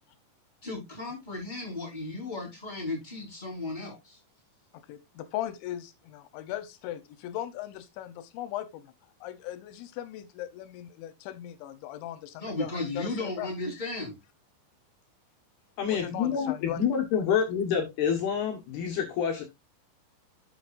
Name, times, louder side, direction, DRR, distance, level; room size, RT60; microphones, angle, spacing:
voice 1, 0.6-4.2 12.4-14.1, left 2 dB, 10° left, 4.4 m, -35 dB
voice 2, 4.9-8.9 9.2-13.5 13.8-13.9 15.9-16.8, left 12 dB, 85° left, 3.3 m, -38 dB
voice 3, 15.8-19.5, left 7 dB, 65° left, 3.3 m, -27 dB
11.5 x 6.9 x 2.5 m
omnidirectional pair, 5.1 m